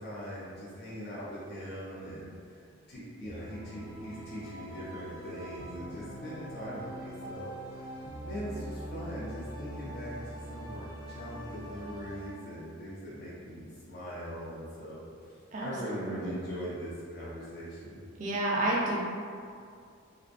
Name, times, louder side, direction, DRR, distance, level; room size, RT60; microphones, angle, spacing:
voice 1, 0.0-7.9 8.2-15.0 15.6-18.0, equal, 45° left, -8 dB, 0.5 m, -41 dB
sound 1, 3.2-12.3, right 1 dB, 90° left, 1.3 m, -43 dB
voice 2, 15.5-16.4 18.2-19.0, right 1 dB, 35° right, -4 dB, 0.4 m, -31 dB
2.5 x 2.1 x 2.5 m, 2.3 s
head